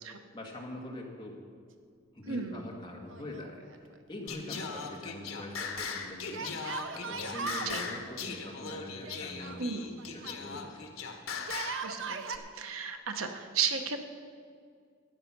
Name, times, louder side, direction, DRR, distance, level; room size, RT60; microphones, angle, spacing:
voice 1, 0.3-1.4 2.1-6.6 6.9-10.8, left 1 dB, 20° left, -1 dB, 1.8 m, -44 dB
voice 2, 2.3-2.6 7.6-7.8 9.6-9.8 11.8-14.0, right 6 dB, 85° right, 6 dB, 1.0 m, -34 dB
Yell, 3.1-4.2 6.3-7.7 9.0-10.4 11.4-12.4, right 5 dB, 65° right, 0.8 m, -39 dB
Singing, 4.3-11.9, left 5 dB, 80° left, 1.3 m, -39 dB
12.5 x 9.2 x 6.0 m, 2.1 s
head